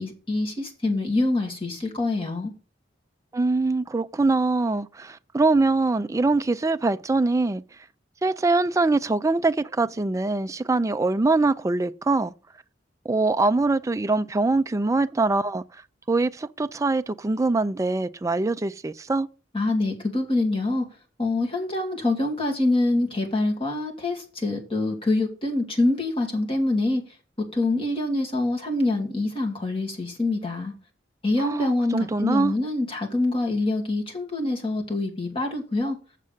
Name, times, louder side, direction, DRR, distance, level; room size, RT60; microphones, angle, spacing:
voice 1, 0.0-2.5 19.5-20.8 21.2-27.0 27.5-30.7 31.2-36.0, left 2 dB, 30° left, 2.6 m, -25 dB
voice 2, 3.3-7.6 8.2-12.3 13.1-15.6 16.1-19.3 31.4-32.5, right 3 dB, 15° right, 0.4 m, -23 dB
7.5 x 6.4 x 7.1 m
head